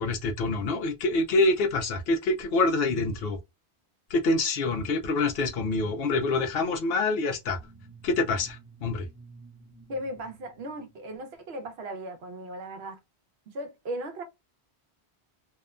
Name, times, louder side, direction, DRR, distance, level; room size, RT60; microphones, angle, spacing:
voice 1, 0.0-3.4 4.1-7.6 8.0-9.1, left 3 dB, 70° left, 0.8 m, -26 dB
sound 1, 7.4-11.5, right 4 dB, 15° right, 0.4 m, -51 dB
voice 2, 9.9-13.0 13.5-14.2, right 1 dB, 70° right, 1.0 m, -37 dB
2.8 x 2.1 x 2.3 m
omnidirectional pair, 1.1 m